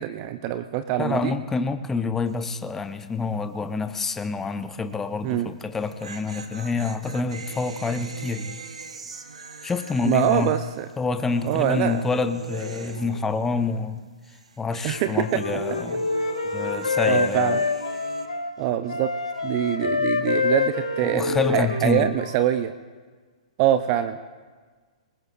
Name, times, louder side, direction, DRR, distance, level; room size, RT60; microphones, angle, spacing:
voice 1, 0.0-1.3 5.2-5.5 10.0-10.9 11.5-12.0 14.8-15.4 17.0-17.6 18.6-19.1 19.4-22.7 23.6-24.3, right 11 dB, 35° right, 10 dB, 0.6 m, -24 dB
voice 2, 1.0-8.6 9.6-10.5 11.0-14.0 14.6-16.0 16.5-17.6 21.0-22.1, left 4 dB, 10° left, 10 dB, 0.8 m, -27 dB
sound 1, 2.3-2.6 2.9-3.0 5.6-14.0 14.2-18.3, right 4 dB, 65° right, 1.5 m, -40 dB
Wind instrument woodwind instrument, 14.9-18.5 18.9-22.5, left 4 dB, 75° left, 1.9 m, -26 dB
28.0 x 20.5 x 2.5 m, 1.4 s
figure-of-eight pair, 115°, 4 cm